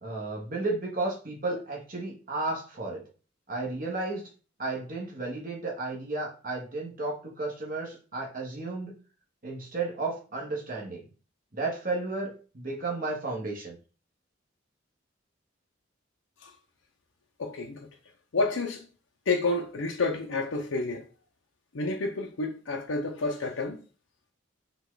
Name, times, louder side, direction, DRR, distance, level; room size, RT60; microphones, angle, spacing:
voice 1, 0.0-3.0 3.5-4.3 4.6-9.0 9.4-11.1 11.5-13.8, right 3 dB, 45° right, 1.2 m, -33 dB
voice 2, 17.4-17.9 18.3-18.9 19.3-21.1 21.7-23.8, left 3 dB, 90° left, 0.7 m, -29 dB
5.7 x 2.4 x 3.8 m
head